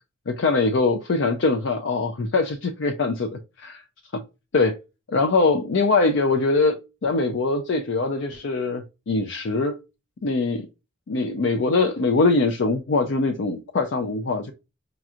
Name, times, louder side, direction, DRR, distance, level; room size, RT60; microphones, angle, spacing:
voice 1, 0.3-3.3 3.6-3.8 4.1-4.2 4.5-4.8 5.1-6.8 7.0-9.7 10.2-10.7 11.1-14.5, left 3 dB, 65° left, 0.5 m, -22 dB
5.1 x 2.9 x 2.4 m
head